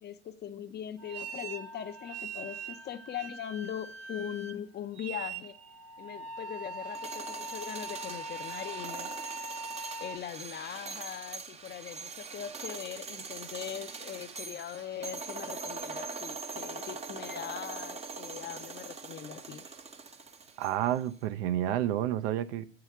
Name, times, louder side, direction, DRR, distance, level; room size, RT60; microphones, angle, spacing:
voice 1, 0.0-5.6 6.0-9.1 10.0-19.7, left 9 dB, 30° left, 0.6 m, -41 dB
sound 1, 1.0-10.2, right 3 dB, 45° right, 1.0 m, -41 dB
sound 2, 6.8-21.0, right 4 dB, 20° right, 0.6 m, -42 dB
voice 2, 20.6-22.7, right 12 dB, 65° right, 0.6 m, -30 dB
7.2 x 4.8 x 7.0 m
hypercardioid pair, 75°, 35 cm